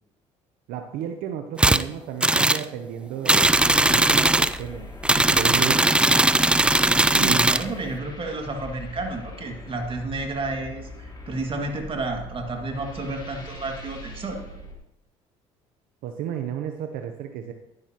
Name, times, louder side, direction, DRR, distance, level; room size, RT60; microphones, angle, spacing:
voice 1, 0.7-4.9 5.2-5.8 7.2-7.5 16.0-17.5, right 9 dB, 75° right, 6 dB, 0.7 m, -32 dB
sound 1, 1.6-1.8 2.2-2.6 3.3-4.6 5.0-7.7, right 2 dB, 5° right, 0.3 m, -19 dB
sound 2, 3.3-14.7, left 1 dB, 30° left, 3.0 m, -41 dB
voice 2, 7.1-14.4, right 2 dB, 35° right, 3 dB, 2.1 m, -31 dB
11.0 x 9.6 x 2.9 m, 0.84 s
supercardioid pair, 80°, 15 cm